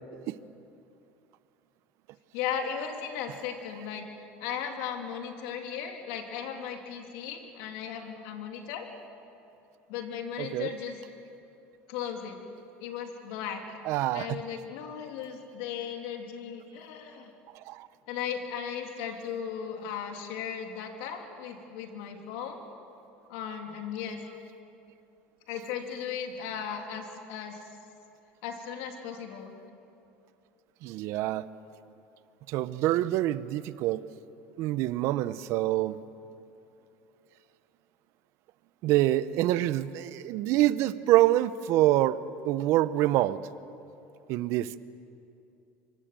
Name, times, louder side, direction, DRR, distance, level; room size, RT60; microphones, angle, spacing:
voice 1, 2.3-4.1 4.4-8.9 9.9-11.0 11.9-12.4 12.8-13.8 14.1-17.3 18.1-22.6 23.3-24.2 25.5-27.6 28.4-29.5, left 8 dB, 75° left, 3 dB, 3.2 m, -36 dB
voice 2, 10.4-10.7 13.8-14.4 17.5-17.9 30.8-31.5 32.5-34.0 34.6-36.0 38.8-43.4 44.3-44.8, right 15 dB, 65° right, 15 dB, 0.9 m, -26 dB
24.5 x 24.5 x 7.7 m, 2.7 s
supercardioid pair, 110°, 5 cm